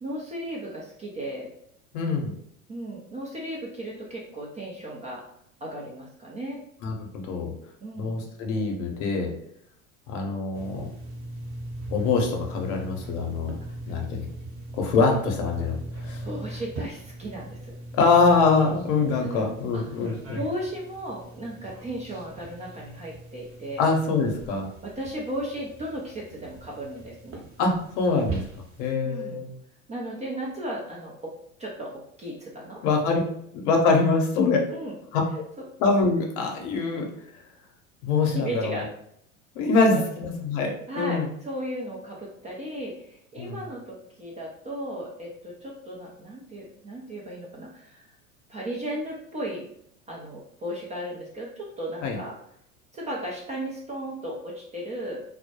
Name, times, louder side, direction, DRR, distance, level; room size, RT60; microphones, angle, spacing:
voice 1, 0.0-1.5 2.7-5.2 5.6-6.6 7.8-8.3 16.2-17.7 19.2-19.4 19.7-20.0 20.3-23.8 24.8-27.4 29.0-29.5 29.9-31.3 31.6-31.9 32.2-32.8 34.7-35.0 35.6-35.7 38.3-38.9 39.9-40.0 40.9-48.1 48.5-49.6 50.1-52.3 52.9-55.2, right 1 dB, 15° right, -3 dB, 0.4 m, -35 dB
voice 2, 1.9-2.3 6.8-7.5 8.0-9.3 10.1-10.9 11.9-13.5 13.9-14.3 14.8-16.2 17.9-20.4 23.8-24.7 27.6-28.4 28.8-29.5 32.8-33.2 33.5-34.6 35.1-35.2 35.8-37.1 38.0-38.8 39.6-41.3 43.4-43.6 52.0-52.2, left 4 dB, 55° left, 1 dB, 0.8 m, -24 dB
sound 1, 10.5-28.9, right 2 dB, 35° right, 0.8 m, -40 dB
2.1 x 2.1 x 2.8 m, 0.71 s
hypercardioid pair, 85°, 42 cm